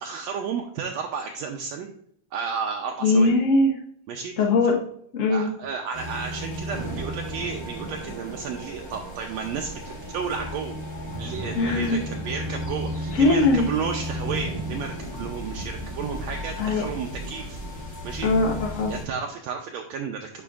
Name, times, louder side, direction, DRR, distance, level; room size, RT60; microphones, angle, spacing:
voice 1, 0.0-1.9 2.3-3.4 4.1-4.3 4.7-4.8 5.3-17.6 18.0-18.3 18.9-20.4, right 6 dB, 80° right, 2 dB, 1.6 m, -32 dB
voice 2, 3.0-3.7 4.4-4.8 5.1-5.5 11.5-12.0 13.1-13.7 16.6-16.8 18.2-18.9, left 2 dB, 80° left, -2 dB, 0.7 m, -20 dB
sound 1, 5.9-19.0, equal, 50° left, 4.0 m, -34 dB
10.5 x 5.3 x 2.4 m, 0.66 s
omnidirectional pair, 3.5 m